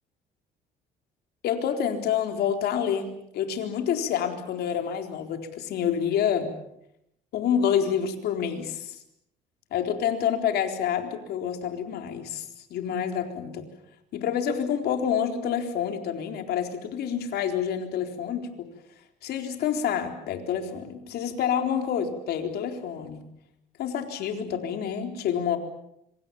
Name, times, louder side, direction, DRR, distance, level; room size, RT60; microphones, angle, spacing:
voice 1, 1.4-6.5 7.3-9.0 9.7-13.6 14.1-18.7 19.2-23.3 23.8-25.6, left 8 dB, 70° left, 5 dB, 4.1 m, -28 dB
26.5 x 26.0 x 7.2 m, 0.78 s
cardioid pair, 110°, 17 cm